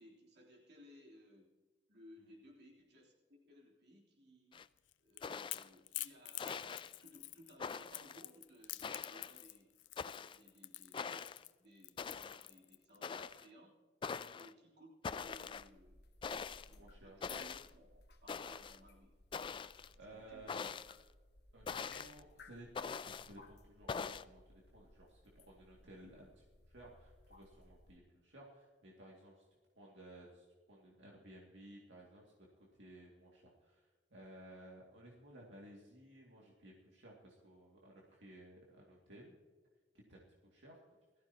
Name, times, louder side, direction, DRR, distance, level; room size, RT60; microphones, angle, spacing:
voice 1, 0.0-1.5 1.9-4.6 5.0-9.7 10.3-13.8 14.3-16.0 16.6-19.7 20.1-20.8, equal, 65° right, -2 dB, 3.5 m, -61 dB
sound 1, 4.5-4.6 5.2-5.7 6.4-6.9 7.6-8.2 8.8-9.4 10.0-10.4 10.9-11.4 12.0-12.5 13.0-13.4 14.0-14.5 15.0-15.7 16.2-16.7 17.2-17.7 18.3-18.8 19.3-19.9 20.5-21.0 21.7-22.2 22.7-23.3 23.9-24.2, left 5 dB, 25° left, 0.3 m, -43 dB
Crackle / Crack, 4.8-13.0, left 17 dB, 85° left, 0.5 m, -48 dB
sound 2, 15.0-28.0, left 3 dB, 60° left, 1.2 m, -62 dB
voice 2, 16.7-17.2 19.6-19.7 20.0-20.7 21.5-29.5 29.8-39.4 40.1-40.8, right 1 dB, 80° right, -3 dB, 2.4 m, -57 dB
20.0 x 14.5 x 2.9 m, 1.4 s
head